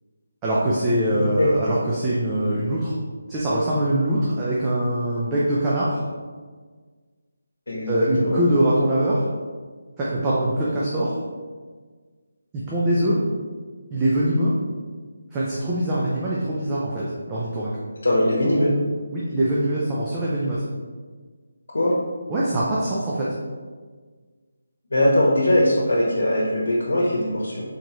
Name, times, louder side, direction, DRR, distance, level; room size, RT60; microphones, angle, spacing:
voice 1, 0.4-2.9 3.3-6.0 7.9-9.3 10.0-11.2 12.5-13.2 13.9-14.5 15.3-17.7 19.1-20.7 22.3-23.3, right 1 dB, 10° right, -7 dB, 0.3 m, -23 dB
voice 2, 1.1-1.5 7.7-8.4 18.0-18.7 21.7-21.9 24.9-27.6, left 1 dB, 80° left, -6 dB, 1.1 m, -21 dB
4.6 x 3.9 x 3.0 m, 1.5 s
hypercardioid pair, 180°, 0 cm